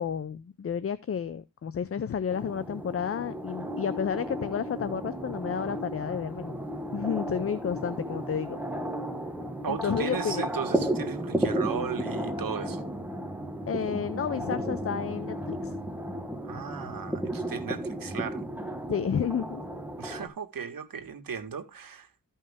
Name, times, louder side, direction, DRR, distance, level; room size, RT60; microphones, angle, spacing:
voice 1, 0.0-6.6 6.9-8.6 9.7-10.5 13.7-15.8 18.9-19.6, left 7 dB, 40° left, 0.5 m, -31 dB
sound 1, 2.3-20.3, right 1 dB, 5° right, 1.4 m, -34 dB
sound 2, 4.4-12.0, right 2 dB, 75° left, 1.7 m, -50 dB
voice 2, 9.6-12.8 16.4-18.4 20.0-22.1, right 6 dB, 75° right, 1.8 m, -36 dB
14.0 x 5.5 x 3.5 m
wide cardioid pair, 170°, 34 cm